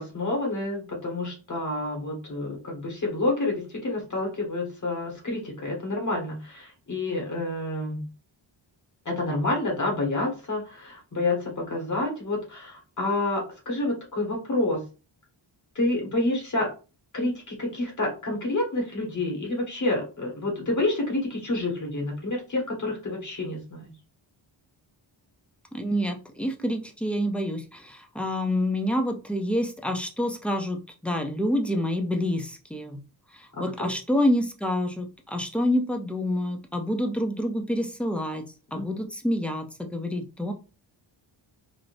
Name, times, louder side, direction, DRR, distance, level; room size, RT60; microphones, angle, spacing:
voice 1, 0.0-8.0 9.0-14.8 15.7-16.7 17.1-23.8 33.5-33.9 38.7-39.0, left 2 dB, 40° left, -1 dB, 1.2 m, -28 dB
voice 2, 25.7-33.0 33.3-40.5, left 1 dB, 5° left, 3 dB, 0.3 m, -27 dB
3.3 x 2.5 x 2.5 m, 0.33 s
wide cardioid pair, 145°, 46 cm